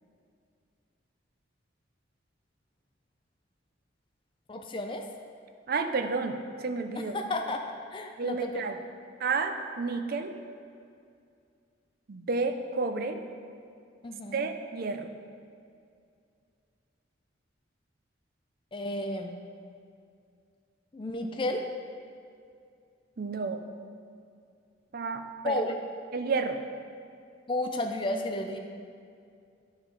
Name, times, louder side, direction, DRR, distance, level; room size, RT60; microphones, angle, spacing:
voice 1, 4.5-5.1 6.9-7.6 7.9-8.7 14.0-14.5 18.7-19.3 20.9-21.7 25.4-25.7 27.5-28.6, left 1 dB, 25° left, 4 dB, 0.4 m, -32 dB
voice 2, 5.7-7.2 8.2-8.8 9.2-10.3 12.1-13.2 14.3-15.1 23.2-23.6 24.9-25.5 26.1-26.6, right 4 dB, 50° right, 6 dB, 0.5 m, -31 dB
11.0 x 3.8 x 4.7 m, 2.3 s
head